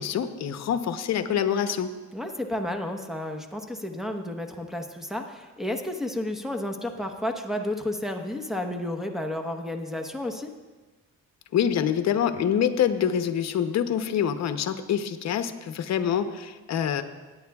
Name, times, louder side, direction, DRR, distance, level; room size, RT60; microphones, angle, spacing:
voice 1, 0.0-1.9 11.5-17.0, left 8 dB, 60° left, 9 dB, 0.8 m, -26 dB
voice 2, 2.1-10.5, left 1 dB, ahead, 2 dB, 1.0 m, -31 dB
17.5 x 9.7 x 2.3 m, 1.3 s
cardioid pair, 90°, 30 cm